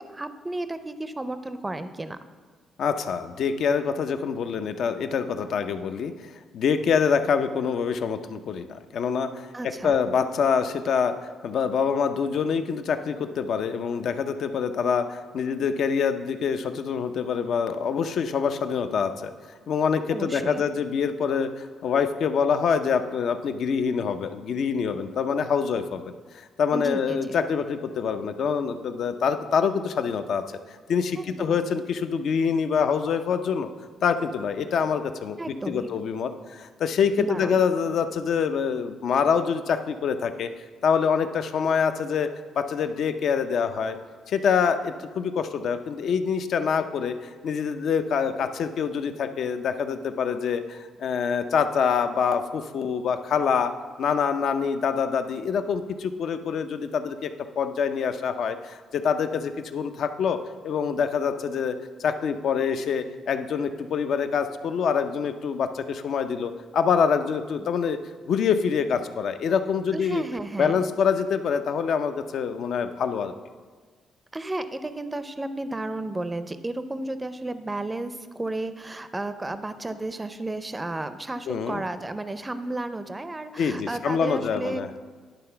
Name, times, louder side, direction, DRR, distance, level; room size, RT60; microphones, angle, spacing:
voice 1, 0.1-2.2 9.5-9.9 20.1-20.6 26.7-27.3 31.2-31.6 35.4-35.9 37.2-37.5 69.9-70.8 74.3-85.0, right 2 dB, 20° right, 11 dB, 0.5 m, -33 dB
voice 2, 2.8-6.1 6.5-11.1 11.4-19.3 19.7-30.4 30.7-33.7 34.0-35.4 35.7-40.5 40.8-42.3 42.5-44.0 44.3-53.7 54.0-57.3 57.6-60.4 60.6-68.0 68.3-70.2 70.6-73.3 81.5-81.8 83.6-84.9, left 6 dB, 65° left, 9 dB, 0.5 m, -25 dB
10.5 x 3.9 x 5.6 m, 1.5 s
cardioid pair, 90°, 0 cm